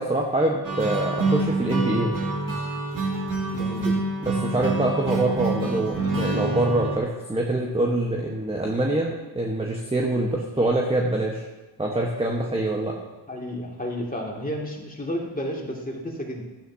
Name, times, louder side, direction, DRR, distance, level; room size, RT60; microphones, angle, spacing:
voice 1, 0.0-2.1 4.2-11.5 11.8-12.9, right 2 dB, 10° right, -1 dB, 1.3 m, -25 dB
sound 1, 0.6-7.0, right 2 dB, 40° right, 2.4 m, -26 dB
voice 2, 3.5-3.9 13.3-16.4, equal, 15° left, -1 dB, 2.4 m, -32 dB
11.5 x 8.8 x 2.8 m, 1.1 s
supercardioid pair, 45°, 48 cm